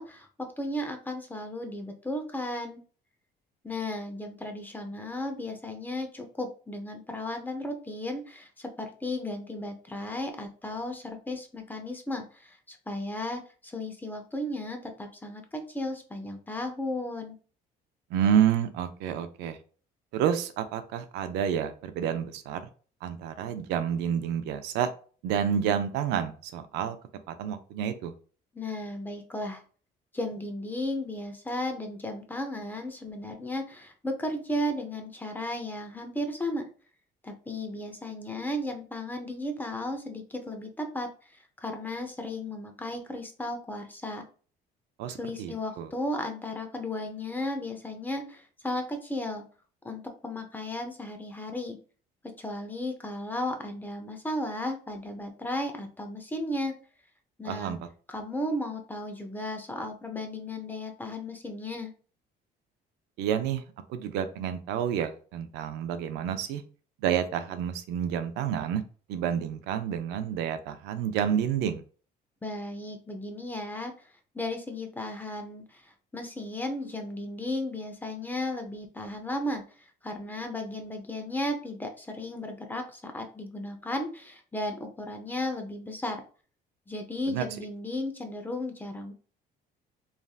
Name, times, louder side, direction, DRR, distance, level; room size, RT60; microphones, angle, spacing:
voice 1, 0.0-2.8 3.6-17.4 28.5-29.6 30.1-36.6 37.2-44.2 45.1-49.4 49.8-51.8 52.4-56.7 57.4-57.7 58.1-61.9 72.4-74.1 74.3-79.6 80.0-86.2 86.9-89.1, left 1 dB, 10° left, 4 dB, 0.6 m, -35 dB
voice 2, 18.1-19.6 20.1-22.6 23.0-24.9 25.2-27.0 27.3-28.1 45.0-45.9 57.4-57.8 63.2-63.6 63.9-66.6 67.0-68.8 69.1-71.8 87.3-87.4, right 9 dB, 85° right, 9 dB, 0.4 m, -29 dB
3.1 x 2.6 x 2.3 m, 0.39 s
cardioid pair, 110°, 17 cm